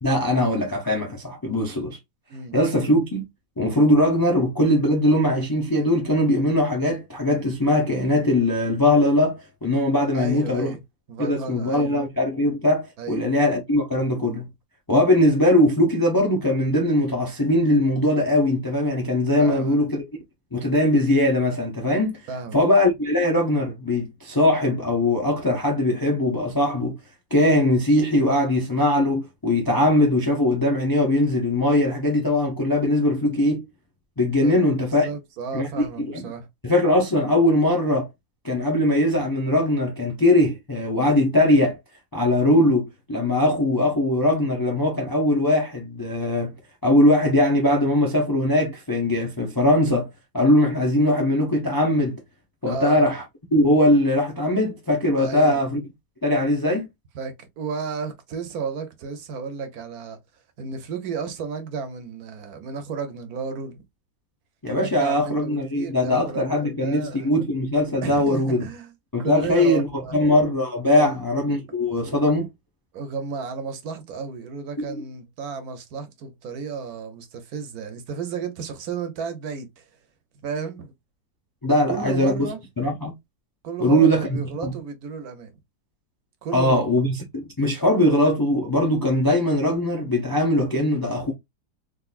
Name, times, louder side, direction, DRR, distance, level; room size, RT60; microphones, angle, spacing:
voice 1, 0.0-2.0 2.5-3.2 3.6-10.8 11.2-14.5 14.9-20.0 20.5-22.2 22.5-27.0 27.3-33.7 34.2-35.1 35.5-36.3 36.6-38.1 38.4-41.8 42.1-46.5 46.8-50.1 50.3-52.2 52.6-53.2 53.5-55.8 56.2-56.9 64.6-68.7 69.1-72.5 74.8-75.0 81.6-82.5 82.8-83.1 83.8-84.7 86.5-91.3, left 1 dB, 35° left, 0.3 m, -21 dB
voice 2, 10.1-10.8 11.1-11.9 13.0-13.3 19.4-19.8 22.3-22.6 34.4-36.5 52.7-53.1 55.2-55.6 57.1-60.2 60.6-63.8 64.8-67.3 68.0-68.9 69.2-70.2 71.0-71.7 72.9-79.9 80.3-80.9 81.7-82.6 83.6-85.5 86.4-86.8, right 5 dB, 65° right, 1.1 m, -33 dB
3.7 x 2.5 x 2.4 m
omnidirectional pair, 1.8 m